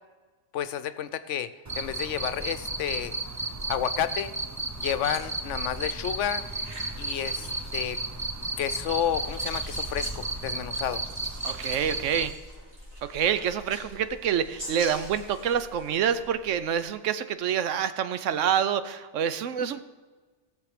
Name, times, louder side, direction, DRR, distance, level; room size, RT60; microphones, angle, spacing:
voice 1, 0.5-1.5 1.8-3.1 3.7-4.3 4.8-6.5 7.0-8.0 8.6-11.0, left 9 dB, 75° left, 13 dB, 1.0 m, -30 dB
Cricket, 1.7-12.3, right 2 dB, 25° right, 0.4 m, -33 dB
sound 1, 4.8-17.0, equal, 55° right, 3.9 m, -45 dB
voice 2, 11.4-12.3 13.0-19.8, right 8 dB, 80° right, 12 dB, 1.0 m, -27 dB
17.5 x 6.9 x 5.0 m, 1.4 s
omnidirectional pair, 1.3 m